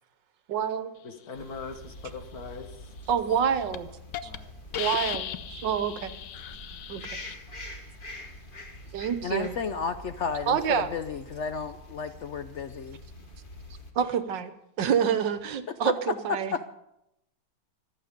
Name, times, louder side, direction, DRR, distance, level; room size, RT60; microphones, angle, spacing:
voice 1, 0.5-0.9 3.1-3.9 4.2-4.3 4.8-6.1 6.9-7.0 8.9-9.5 10.5-10.9 13.9-14.5 14.8-16.7, right 7 dB, 70° right, 11 dB, 1.6 m, -27 dB
voice 2, 1.0-2.9 4.2-4.6, left 4 dB, 55° left, 6 dB, 1.9 m, -41 dB
sound 1, 1.3-13.9, left 1 dB, 30° left, 1.9 m, -45 dB
Hiss, 3.1-3.4 3.7-3.8 4.1-4.4 4.7-7.3, left 11 dB, 70° left, 1.4 m, -36 dB
voice 3, 9.2-13.0 16.5-16.6, left 6 dB, 90° left, 10 dB, 0.6 m, -33 dB
26.0 x 8.9 x 5.2 m, 0.83 s
omnidirectional pair, 2.0 m